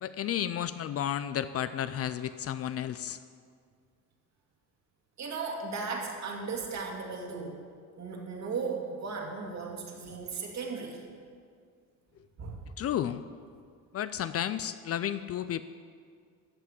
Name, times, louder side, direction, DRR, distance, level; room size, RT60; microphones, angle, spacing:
voice 1, 0.0-3.2 12.8-13.2 13.9-15.6, left 10 dB, 45° left, 13 dB, 0.4 m, -32 dB
voice 2, 5.2-7.6 8.0-11.0 12.4-12.6, right 4 dB, 50° right, 0 dB, 2.5 m, -36 dB
14.0 x 5.8 x 8.6 m, 2.1 s
cardioid pair, 115°, 35 cm